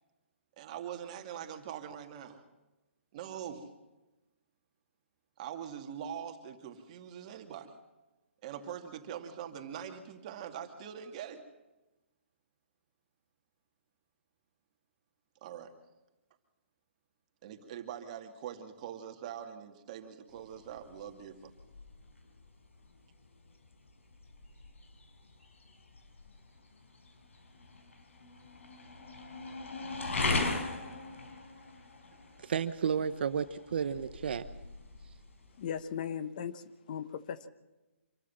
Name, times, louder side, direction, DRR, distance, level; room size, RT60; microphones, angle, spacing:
voice 1, 0.6-2.4 3.1-3.7 5.4-7.7 8.4-11.4 15.4-15.7 17.4-21.5, right 9 dB, 35° right, 2.4 m, -43 dB
sound 1, 20.3-35.8, left 3 dB, 85° left, 4.4 m, -40 dB
voice 2, 32.4-34.5, right 7 dB, 55° right, 1.0 m, -32 dB
voice 3, 35.6-36.6 36.9-37.5, left 8 dB, 40° left, 1.2 m, -37 dB
26.5 x 13.5 x 7.4 m
hypercardioid pair, 160°, 7 cm